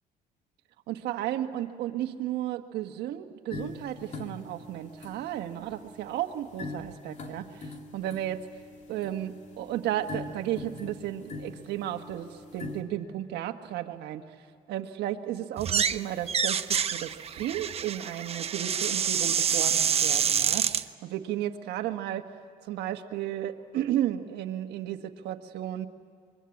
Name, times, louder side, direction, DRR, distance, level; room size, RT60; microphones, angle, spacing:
voice 1, 0.9-8.5 8.9-14.2 14.7-22.3 22.6-25.9, right 12 dB, 80° right, 6 dB, 1.5 m, -33 dB
sound 1, 3.5-12.8, left 3 dB, 45° left, 2.6 m, -43 dB
sound 2, 15.6-16.0 16.3-20.8, right 7 dB, 35° right, 0.8 m, -27 dB
25.5 x 23.0 x 8.5 m, 2.4 s
cardioid pair, 110°, 17 cm